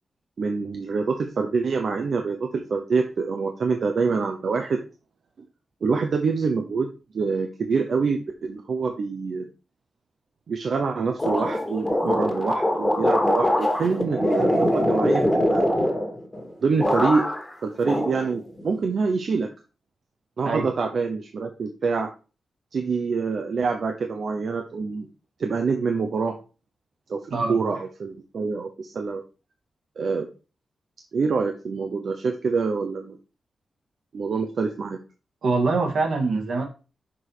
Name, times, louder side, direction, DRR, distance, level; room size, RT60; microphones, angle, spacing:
voice 1, 0.4-4.8 5.8-6.9 7.1-9.5 10.5-15.6 16.6-17.2 17.6-19.5 20.4-22.1 22.7-25.1 25.4-26.4 27.1-27.2 27.5-29.2 30.0-30.3 31.1-33.2 34.1-35.0, right 4 dB, 65° right, 4 dB, 0.9 m, -26 dB
sound 1, 11.2-16.5 16.8-17.5 17.8-18.7, left 1 dB, 10° left, 1.8 m, -23 dB
voice 2, 35.4-36.6, right 3 dB, 85° right, 1 dB, 2.2 m, -23 dB
6.2 x 4.8 x 4.9 m, 0.33 s
wide cardioid pair, 115°, 0 cm